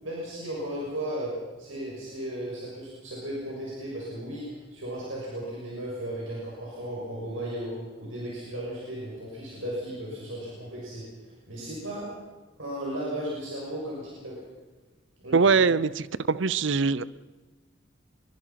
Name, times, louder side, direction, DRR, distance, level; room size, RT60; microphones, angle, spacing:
voice 1, 0.0-1.3 1.6-7.7 8.0-12.0 12.6-14.3 15.2-15.5, right 1 dB, 85° right, -4 dB, 6.8 m, -35 dB
voice 2, 15.3-17.0, right 4 dB, 70° right, 18 dB, 0.7 m, -22 dB
25.5 x 22.5 x 5.9 m, 1.2 s
head